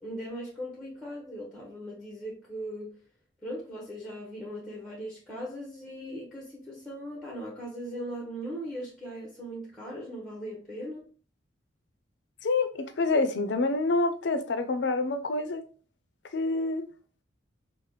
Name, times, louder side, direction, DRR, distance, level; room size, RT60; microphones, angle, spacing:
voice 1, 0.0-3.0 3.4-11.0, equal, ahead, 0.7 m, -39 dB
voice 2, 12.4-15.6 16.3-16.9, left 3 dB, 65° left, 0.5 m, -27 dB
4.8 x 2.0 x 3.0 m
head